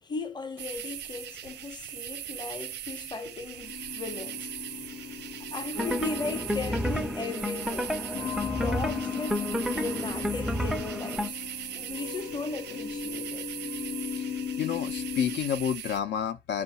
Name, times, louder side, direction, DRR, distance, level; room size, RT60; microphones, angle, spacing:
voice 1, 0.0-5.1 5.4-8.0 8.5-11.4 11.7-13.5, left 4 dB, 20° left, 0.8 m, -37 dB
sound 1, 0.6-16.0, right 11 dB, 65° right, 0.5 m, -40 dB
sound 2, 3.6-15.4, left 7 dB, 85° left, 0.9 m, -38 dB
sound 3, 5.8-11.3, left 1 dB, ahead, 0.4 m, -31 dB
voice 2, 14.1-16.6, left 8 dB, 65° left, 0.6 m, -30 dB
4.7 x 2.5 x 4.0 m
cardioid pair, 115°, 19 cm